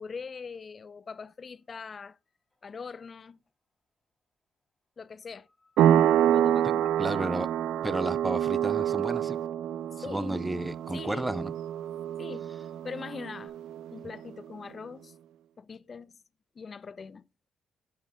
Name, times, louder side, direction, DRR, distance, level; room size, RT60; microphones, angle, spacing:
voice 1, 0.0-2.2 2.6-3.4 5.0-5.5 6.3-7.1 9.9-10.5 10.9-11.4 12.2-12.5 12.8-13.5 13.9-15.1 15.6-16.2 16.6-17.3, left 5 dB, 40° left, 0.6 m, -42 dB
sound 1, 1.2-1.5 5.2-13.5, left 3 dB, 10° left, 4.8 m, -69 dB
sound 2, 5.8-14.1, right 11 dB, 85° right, 0.4 m, -27 dB
voice 2, 7.0-7.5 7.8-9.4 10.1-11.5, right 1 dB, 10° right, 0.5 m, -32 dB
10.0 x 9.4 x 2.3 m
cardioid pair, 90°, 0 cm